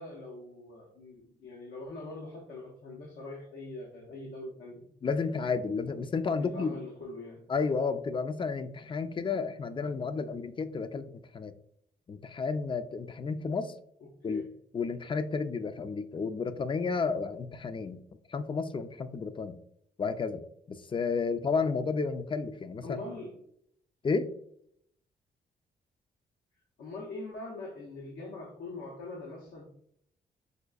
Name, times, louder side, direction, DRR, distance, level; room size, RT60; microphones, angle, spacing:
voice 1, 0.0-4.8 6.3-7.5 14.3-14.5 22.8-23.4 26.8-29.7, left 2 dB, 90° left, -2 dB, 0.7 m, -42 dB
voice 2, 5.0-6.8 7.5-11.5 12.1-13.7 14.2-14.4 14.7-18.0 18.3-19.6 20.0-20.4 20.7-23.0 24.0-24.3, left 4 dB, 30° left, 11 dB, 0.3 m, -32 dB
4.9 x 2.3 x 2.4 m, 0.70 s
cardioid pair, 65°, 18 cm